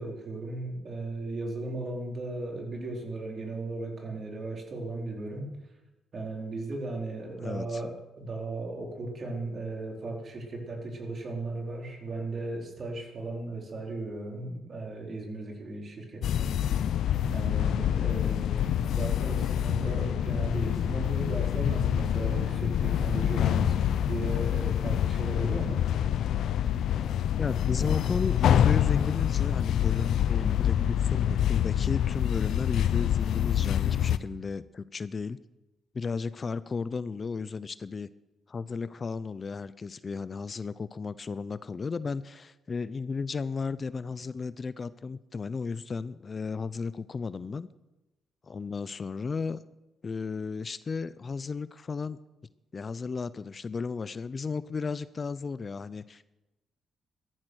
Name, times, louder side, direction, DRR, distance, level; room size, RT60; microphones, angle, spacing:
voice 1, 0.0-5.5 6.1-16.5 17.3-25.8, right 2 dB, 45° right, 1 dB, 4.5 m, -36 dB
voice 2, 7.4-7.8 27.4-35.4 35.9-38.1 38.5-47.7 48.4-49.6 50.0-52.2 52.7-56.2, left 5 dB, 35° left, 16 dB, 0.6 m, -34 dB
sound 1, 16.2-34.2, left 10 dB, 75° left, 0.7 m, -26 dB
15.0 x 13.5 x 6.4 m, 1.0 s
cardioid pair, 90°, 0 cm